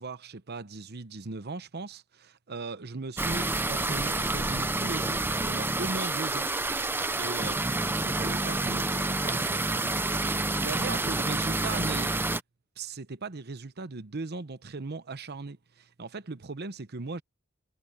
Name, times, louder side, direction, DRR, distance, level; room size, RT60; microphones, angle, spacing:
voice 1, 0.0-6.5 7.2-12.1 12.8-17.2, right 3 dB, 50° right, 0.9 m, -38 dB
sound 1, 3.2-12.4, right 2 dB, 10° right, 0.6 m, -28 dB
head